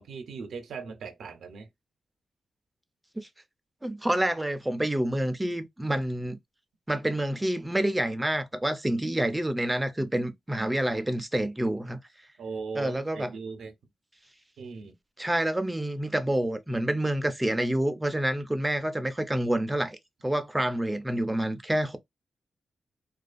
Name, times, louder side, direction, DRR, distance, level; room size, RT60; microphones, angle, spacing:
voice 1, 0.0-1.7 12.4-13.7 14.6-14.9, right 5 dB, 85° right, 0.6 m, -39 dB
voice 2, 3.8-6.4 6.9-12.0 12.7-13.3 15.2-20.0 20.2-22.0, right 1 dB, 10° right, 0.5 m, -28 dB
2.4 x 2.2 x 2.5 m
cardioid pair, 80°, 0 cm